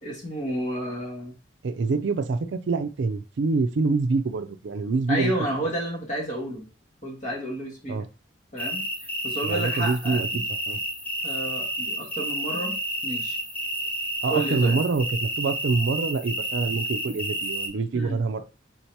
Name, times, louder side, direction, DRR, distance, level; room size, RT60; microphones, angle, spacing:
voice 1, 0.0-1.3 5.1-6.6 7.0-8.0 8.5-8.8 9.2-10.4 11.2-12.8 13.0-13.4 14.3-14.7 17.9-18.2, right 1 dB, 40° left, 1.4 m, -31 dB
voice 2, 1.6-5.5 7.9-8.1 9.4-10.8 14.2-18.4, right 4 dB, 65° right, 0.4 m, -26 dB
sound 1, 8.6-17.7, right 1 dB, 10° left, 0.8 m, -30 dB
3.8 x 2.8 x 4.5 m
head